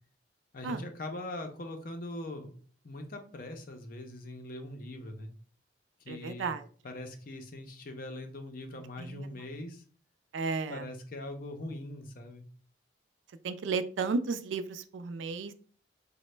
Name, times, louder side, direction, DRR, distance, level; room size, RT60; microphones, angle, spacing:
voice 1, 0.5-2.5 2.8-5.3 6.0-6.5 6.8-9.8 10.7-12.4, left 1 dB, 45° left, 5 dB, 0.5 m, -41 dB
voice 2, 6.1-6.6 9.1-9.3 10.3-10.8 13.4-15.5, right 4 dB, 75° right, 12 dB, 0.3 m, -33 dB
3.8 x 2.1 x 3.1 m, 0.43 s
head